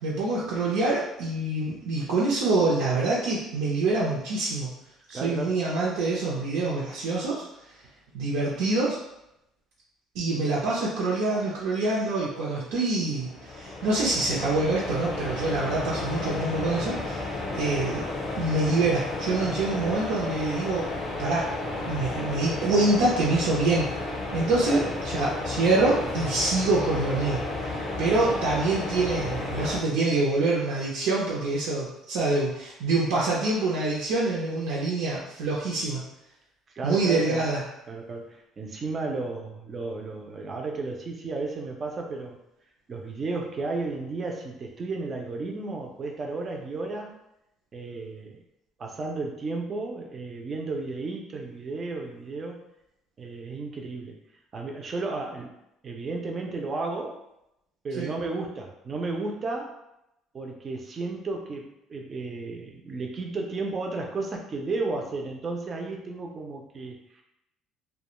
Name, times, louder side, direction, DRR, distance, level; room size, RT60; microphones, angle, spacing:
voice 1, 0.0-4.7 5.1-7.4 8.1-9.0 10.1-17.2 17.5-18.0 18.4-20.9 21.2-21.5 21.9-23.9 24.3-24.8 25.1-27.4 28.0-36.0 36.8-37.6 58.0-58.1, right 2 dB, 90° right, -6 dB, 0.5 m, -25 dB
voice 2, 5.1-5.6 24.7-24.9 36.7-37.5 37.9-42.4 42.9-47.1 47.7-48.4 48.8-52.6 53.2-54.2 54.5-55.5 55.8-57.2 57.8-59.8 60.3-67.2, right 3 dB, 25° right, 1 dB, 0.3 m, -33 dB
sound 1, 13.1-29.8, left 2 dB, 30° left, 0.5 m, -32 dB
2.3 x 2.1 x 2.9 m, 0.84 s
cardioid pair, 165°, 0 cm